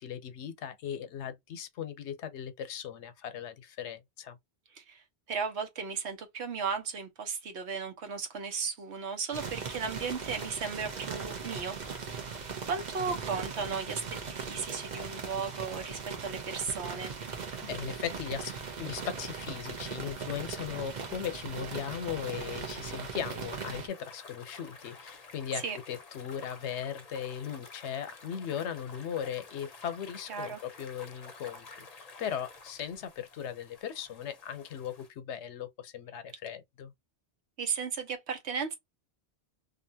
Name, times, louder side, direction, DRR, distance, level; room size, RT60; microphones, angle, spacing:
voice 1, 0.0-4.4 17.6-36.9, left 8 dB, 80° left, 0.9 m, -38 dB
voice 2, 5.3-11.8 12.1-12.3 12.7-17.1 25.6-25.8 30.3-30.6 37.6-38.7, right 5 dB, 75° right, 1.2 m, -35 dB
sound 1, 9.3-23.9, right 5 dB, 45° right, 0.8 m, -39 dB
sound 2, 23.9-35.1, left 3 dB, 40° left, 0.7 m, -51 dB
2.7 x 2.4 x 2.7 m
omnidirectional pair, 1.1 m